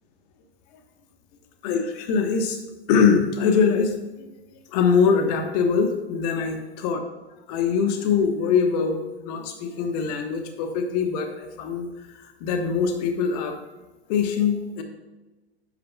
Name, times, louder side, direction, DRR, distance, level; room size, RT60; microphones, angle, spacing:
voice 1, 1.6-2.6 2.9-4.3 4.7-7.0 7.5-9.0 9.2-11.9 12.2-13.5 14.1-14.8, left 6 dB, 40° left, 5 dB, 1.2 m, -23 dB
11.5 x 8.7 x 2.3 m, 1.1 s
figure-of-eight pair, 105°, 32 cm